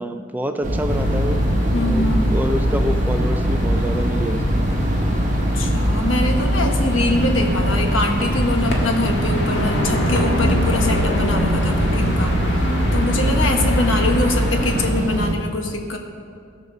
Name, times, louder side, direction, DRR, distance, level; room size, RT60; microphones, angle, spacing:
voice 1, 0.0-1.4 1.8-4.6 13.2-13.6, equal, 10° right, 7 dB, 0.4 m, -27 dB
sound 1, 0.6-15.3, equal, 40° right, 0.9 m, -22 dB
sound 2, 0.9-14.9, left 1 dB, 60° left, 1.7 m, -26 dB
voice 2, 1.7-2.3 5.5-12.4 12.9-16.0, left 2 dB, 75° left, 3 dB, 1.3 m, -23 dB
16.5 x 5.4 x 6.9 m, 2.4 s
head